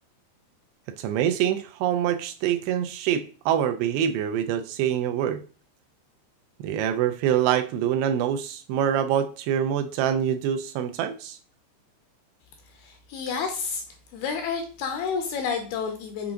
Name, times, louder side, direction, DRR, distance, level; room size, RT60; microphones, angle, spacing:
voice 1, 1.0-5.4 6.6-11.4, right 9 dB, 80° right, 8 dB, 2.5 m, -25 dB
voice 2, 12.7-13.8 14.1-16.3, left 6 dB, 80° left, 4 dB, 2.4 m, -30 dB
7.0 x 4.4 x 3.7 m, 0.39 s
omnidirectional pair, 5.1 m